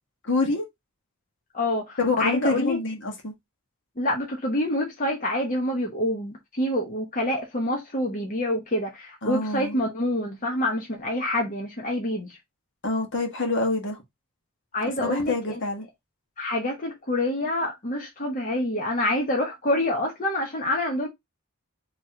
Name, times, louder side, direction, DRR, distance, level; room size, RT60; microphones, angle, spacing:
voice 1, 0.2-0.7 2.0-3.3 9.2-9.8 12.8-14.0 15.0-15.8, left 3 dB, 60° left, 1.5 m, -26 dB
voice 2, 1.5-2.8 4.0-12.4 14.7-15.6 16.4-21.1, left 1 dB, 40° left, 1.0 m, -27 dB
4.7 x 3.1 x 3.7 m
head